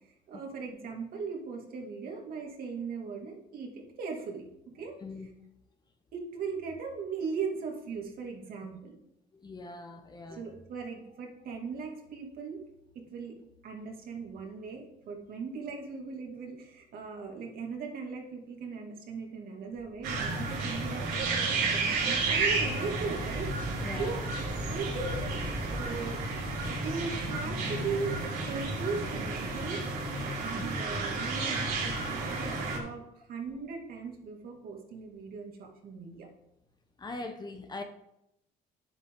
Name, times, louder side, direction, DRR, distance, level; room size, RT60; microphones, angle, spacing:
voice 1, 0.3-4.9 6.1-9.0 10.3-12.6 12.9-13.4 13.6-24.3 24.6-25.3 25.7-26.2 26.7-28.2 28.5-29.8 30.4-36.3, right 5 dB, 60° right, 1 dB, 2.5 m, -38 dB
voice 2, 9.4-10.4 23.8-24.2 24.5-24.6 30.5-30.7 37.0-37.8, left 3 dB, 25° left, 6 dB, 1.1 m, -41 dB
sound 1, 19.7-27.8, right 1 dB, 15° right, 2.7 m, -43 dB
sound 2, 20.0-32.8, right 3 dB, 85° right, 3.8 m, -32 dB
10.5 x 8.3 x 3.9 m, 0.82 s
cardioid pair, 110°, 17 cm